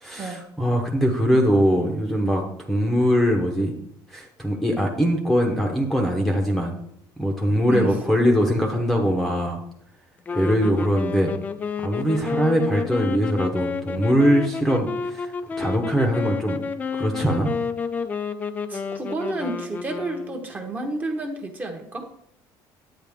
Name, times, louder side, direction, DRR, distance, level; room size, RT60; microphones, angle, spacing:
voice 1, 0.0-3.7 4.1-6.7 7.2-9.6 10.3-11.3 11.8-15.3 15.6-16.6 16.9-17.5, equal, ahead, 1 dB, 0.9 m, -22 dB
sound 1, 10.3-20.7, left 5 dB, 20° left, 0.4 m, -30 dB
voice 2, 18.7-22.1, right 2 dB, 20° right, 3 dB, 1.1 m, -30 dB
10.0 x 8.6 x 3.6 m, 0.72 s
cardioid pair, 170°, 8 cm